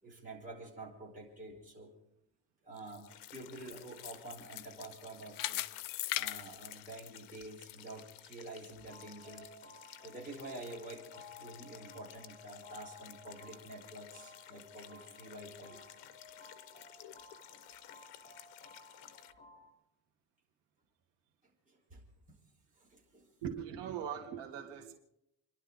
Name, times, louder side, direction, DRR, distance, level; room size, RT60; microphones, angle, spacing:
voice 1, 0.0-1.9 2.6-5.6 6.1-9.8 10.0-15.8 21.7-22.0 22.3-22.4 22.7-23.3, right 2 dB, 20° right, -3 dB, 5.0 m, -48 dB
sound 1, 2.8-7.7 8.1-8.2 8.8-8.9, left 15 dB, 55° left, 0.5 m, -40 dB
sound 2, 3.1-19.3, left 12 dB, 85° left, 1.1 m, -55 dB
sound 3, 8.8-19.7, left 3 dB, 20° left, 3.1 m, -56 dB
voice 2, 23.4-24.9, right 8 dB, 85° right, 3 dB, 2.3 m, -40 dB
29.5 x 11.5 x 3.9 m, 0.82 s
cardioid pair, 180°, 41 cm